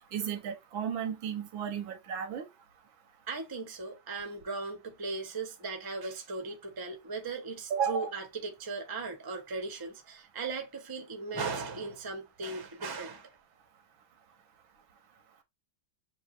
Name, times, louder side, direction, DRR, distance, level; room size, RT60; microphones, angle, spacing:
voice 1, 0.1-2.5 7.7-8.1, right 7 dB, 90° right, 1.7 m, -33 dB
voice 2, 3.3-13.3, right 4 dB, 20° right, 0.7 m, -38 dB
6.9 x 2.7 x 2.4 m
omnidirectional pair, 2.1 m